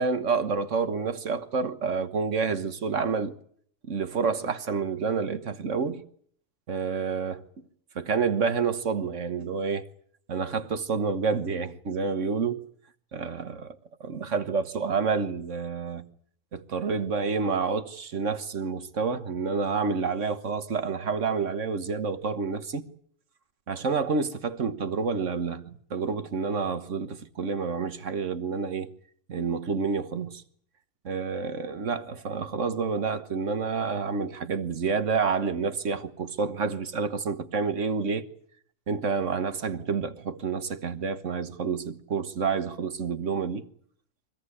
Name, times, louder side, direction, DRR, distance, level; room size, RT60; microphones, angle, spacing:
voice 1, 0.0-3.3 3.8-6.0 6.7-7.4 7.9-9.8 10.3-12.6 13.1-16.0 16.5-22.8 23.7-28.9 29.3-30.4 31.0-38.3 38.9-43.7, right 5 dB, 55° right, 1.6 m, -29 dB
24.5 x 17.0 x 9.8 m
omnidirectional pair, 1.6 m